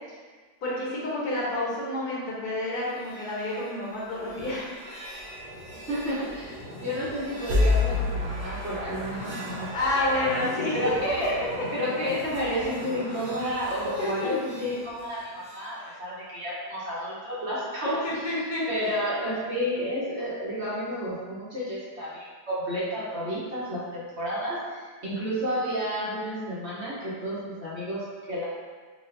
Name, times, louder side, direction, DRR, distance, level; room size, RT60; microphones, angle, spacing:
voice 1, 0.6-4.7 9.7-10.8 14.0-14.3 15.7-15.9 18.0-19.0, left 2 dB, 65° left, -6 dB, 1.5 m, -29 dB
sound 1, 2.8-15.7, left 2 dB, 65° right, 1.4 m, -33 dB
voice 2, 5.9-9.7 10.0-10.3 10.7-11.4 11.7-18.2 18.7-22.2 22.5-28.4, equal, 45° right, -8 dB, 1.1 m, -31 dB
5.0 x 2.5 x 2.6 m, 1.5 s
omnidirectional pair, 1.8 m